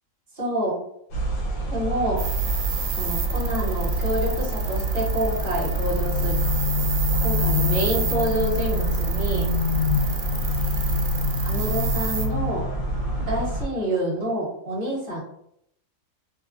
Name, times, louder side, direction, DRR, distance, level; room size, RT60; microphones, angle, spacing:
voice 1, 0.3-0.7 1.7-2.2 3.0-6.4 7.2-9.5 11.4-12.7 13.3-15.2, right 1 dB, 40° right, -5 dB, 1.2 m, -27 dB
sound 1, 1.1-13.7, equal, 85° left, 1.1 m, -25 dB
sound 2, 2.2-12.3, right 5 dB, 75° right, 1.0 m, -32 dB
2.8 x 2.3 x 2.5 m, 0.74 s
omnidirectional pair, 1.4 m